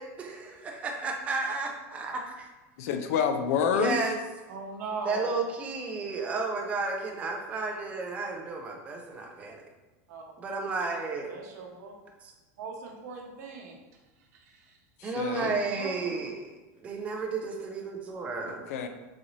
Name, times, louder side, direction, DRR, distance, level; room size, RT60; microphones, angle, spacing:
voice 1, 0.0-2.5 3.7-4.2 5.0-9.6 10.4-11.3 15.0-16.5 16.8-18.7, right 4 dB, 15° right, 1 dB, 0.3 m, -32 dB
voice 2, 2.8-4.0 15.0-15.6 18.5-18.9, left 7 dB, 60° left, 7 dB, 0.4 m, -28 dB
voice 3, 4.5-5.3 10.1-10.2 11.3-11.9 12.6-13.8 14.2-14.8 15.8-16.3, right 4 dB, 70° right, 1 dB, 0.7 m, -40 dB
4.0 x 2.5 x 3.0 m, 1.2 s
supercardioid pair, 170°, 9 cm